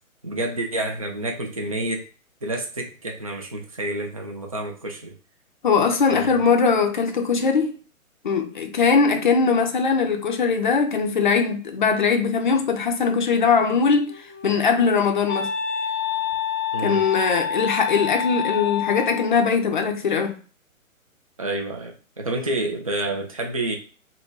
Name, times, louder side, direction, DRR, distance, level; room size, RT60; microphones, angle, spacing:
voice 1, 0.2-2.1 2.4-5.1 6.1-6.4 16.7-17.0 21.4-23.8, right 2 dB, 25° right, 0.4 m, -29 dB
voice 2, 5.6-7.7 8.2-14.1 14.4-15.5 16.8-20.4, left 5 dB, 35° left, 0.5 m, -20 dB
Wind instrument woodwind instrument, 14.1-19.4, left 8 dB, 5° right, 0.8 m, -28 dB
3.8 x 2.2 x 3.8 m
figure-of-eight pair, 145°, 42 cm